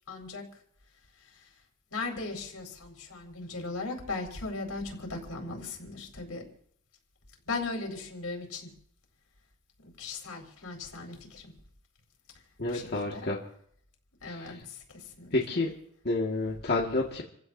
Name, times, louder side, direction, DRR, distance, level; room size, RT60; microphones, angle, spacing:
voice 1, 0.1-0.4 1.9-6.4 7.5-8.7 9.8-11.5 12.7-13.3 14.2-15.3, left 3 dB, 80° left, 1 dB, 4.3 m, -38 dB
voice 2, 12.6-13.4 14.3-14.6 15.3-15.7 16.0-17.2, left 2 dB, 50° left, -3 dB, 1.9 m, -29 dB
29.5 x 16.0 x 2.7 m, 0.67 s
head